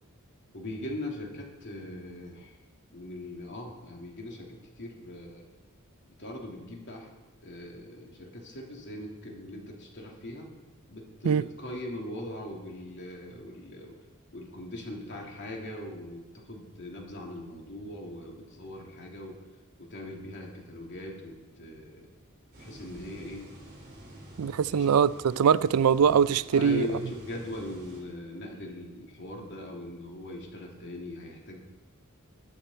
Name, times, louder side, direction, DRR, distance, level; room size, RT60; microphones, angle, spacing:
voice 1, 0.5-2.6 2.9-5.5 6.2-7.1 7.4-10.5 10.9-14.0 14.3-19.4 19.8-22.1 22.6-23.4 24.7-24.9 26.5-31.6, left 1 dB, 55° left, 2.8 m, -40 dB
sound 1, 22.5-28.0, right 1 dB, 45° right, 4.0 m, -49 dB
voice 2, 24.4-26.9, right 7 dB, 85° right, 0.4 m, -22 dB
21.0 x 7.1 x 4.4 m
head